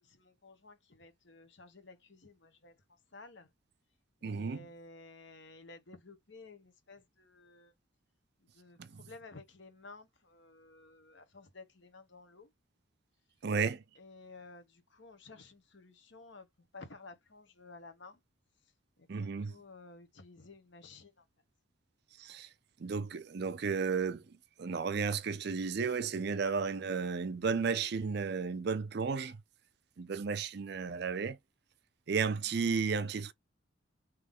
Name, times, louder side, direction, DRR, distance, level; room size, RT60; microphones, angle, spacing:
voice 1, 0.0-2.8 3.1-3.5 4.2-7.7 8.5-12.5 14.0-16.5 16.7-18.2 19.0-19.1 19.4-21.2, left 3 dB, 55° left, 1.1 m, -54 dB
voice 2, 4.2-4.7 8.8-9.1 13.4-13.8 19.1-19.5 22.2-22.5 22.8-24.2 24.6-29.4 30.0-31.4 32.1-33.3, right 5 dB, 50° right, 0.4 m, -33 dB
3.6 x 3.0 x 3.6 m
head